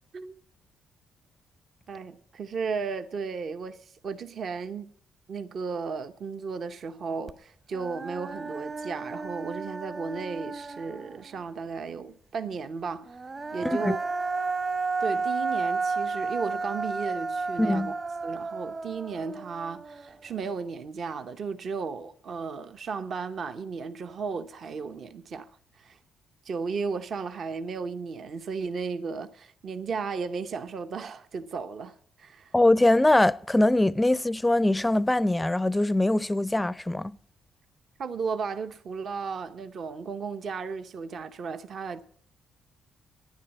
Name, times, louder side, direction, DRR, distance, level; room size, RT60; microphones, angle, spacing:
voice 1, 1.9-4.9 5.3-13.2 13.5-14.0 15.0-17.9 18.2-26.0 26.4-32.5 38.0-42.0, right 5 dB, 55° right, 0.8 m, -35 dB
Human voice, 7.3-7.4 7.7-11.4 13.1-20.3, right 4 dB, 40° right, 1.2 m, -32 dB
voice 2, 17.6-17.9 32.5-37.2, left 1 dB, 10° left, 0.5 m, -22 dB
12.0 x 10.0 x 8.2 m
cardioid pair, 90°, 0 cm